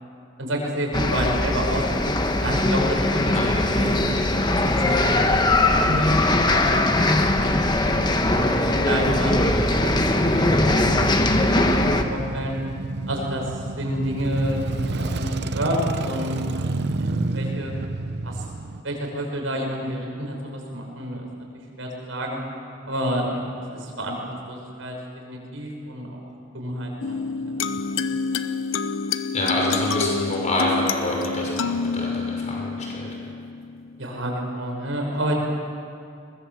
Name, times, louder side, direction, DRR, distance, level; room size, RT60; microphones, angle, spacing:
voice 1, 0.4-1.8 2.4-3.4 3.7-3.9 4.2-7.5 8.2-8.5 8.8-12.6 13.1-16.7 17.0-17.7 18.2-18.4 18.8-21.3 21.8-22.4 22.9-23.4 23.7-24.9 25.3-26.2 26.5-27.6 34.0-35.3, equal, 90° right, 0 dB, 5.6 m, -29 dB
sound 1, 0.9-12.0, left 2 dB, 20° left, 1.3 m, -20 dB
Male speech man speaking / Motorcycle / Idling, 2.8-18.8, right 2 dB, 55° right, 0.8 m, -32 dB
sound 2, 27.0-34.0, left 4 dB, 80° left, 0.9 m, -28 dB
voice 2, 29.3-33.1, left 1 dB, 35° left, -2 dB, 6.2 m, -27 dB
22.5 x 20.5 x 7.5 m, 2.5 s
head